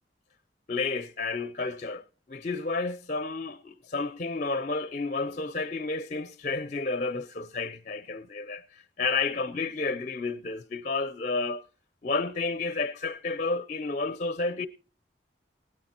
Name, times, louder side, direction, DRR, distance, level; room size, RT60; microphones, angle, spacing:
voice 1, 0.7-2.0 2.3-11.6 12.0-14.7, left 3 dB, 40° left, 0.5 m, -31 dB
17.5 x 9.7 x 4.3 m
head